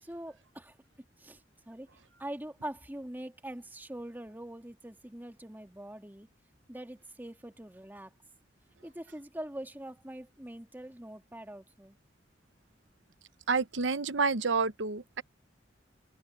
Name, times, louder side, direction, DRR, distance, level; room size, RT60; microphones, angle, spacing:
voice 1, 0.0-0.8 1.2-1.9 2.2-6.3 6.7-8.1 8.8-12.0, right 1 dB, 10° right, 2.3 m, -43 dB
voice 2, 13.5-15.2, right 4 dB, 85° right, 0.9 m, -29 dB
head